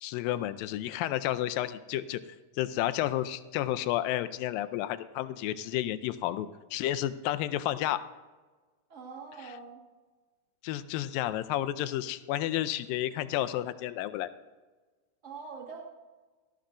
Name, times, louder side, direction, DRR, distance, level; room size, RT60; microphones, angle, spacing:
voice 1, 0.0-2.2 2.6-8.0 9.4-9.5 10.6-14.3, left 13 dB, 85° left, 12 dB, 2.3 m, -31 dB
voice 2, 8.9-9.8 15.2-15.8, right 5 dB, 40° right, -3 dB, 1.0 m, -44 dB
18.0 x 13.0 x 2.6 m, 1.3 s
omnidirectional pair, 4.0 m